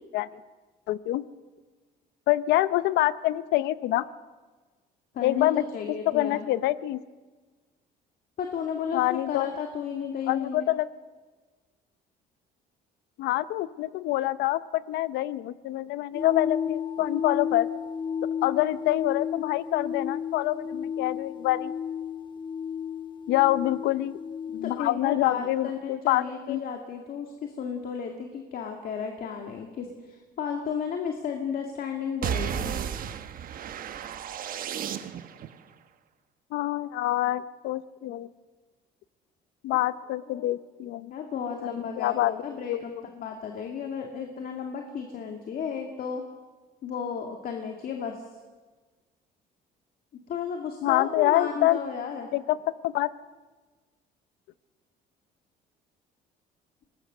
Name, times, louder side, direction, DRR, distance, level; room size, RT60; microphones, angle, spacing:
voice 1, 0.9-1.2 2.3-4.1 5.2-5.6 6.1-7.0 8.9-9.5 10.3-10.9 13.2-17.7 18.4-21.7 23.3-24.2 24.5-26.6 36.5-38.3 39.6-41.1 41.6-42.3 42.7-43.0 50.8-51.8 52.3-52.6 52.8-53.1, left 15 dB, 85° left, 16 dB, 0.8 m, -26 dB
voice 2, 5.1-6.5 8.4-10.7 24.6-32.7 40.3-40.5 41.1-46.2 46.8-48.2 50.1-52.3, left 6 dB, 60° left, 3 dB, 2.3 m, -33 dB
sound 1, 16.1-24.8, left 7 dB, 30° left, 0.9 m, -33 dB
sound 2, 32.2-35.5, right 9 dB, 55° right, 1.2 m, -33 dB
24.0 x 20.0 x 6.7 m, 1.3 s
cardioid pair, 110°, 17 cm